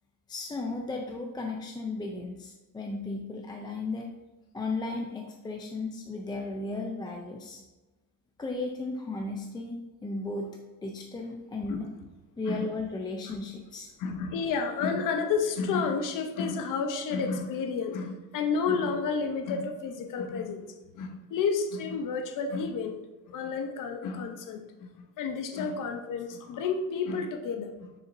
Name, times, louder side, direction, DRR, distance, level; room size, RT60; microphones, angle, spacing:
voice 1, 0.3-4.1 4.5-7.6 8.4-10.5 10.8-11.9 12.4-13.9, left 3 dB, 15° left, 1 dB, 0.4 m, -35 dB
voice 2, 14.0-20.7 20.9-23.0 23.3-27.9, left 5 dB, 65° left, 5 dB, 0.8 m, -31 dB
7.0 x 6.7 x 2.6 m, 1.1 s
cardioid pair, 175°, 35 cm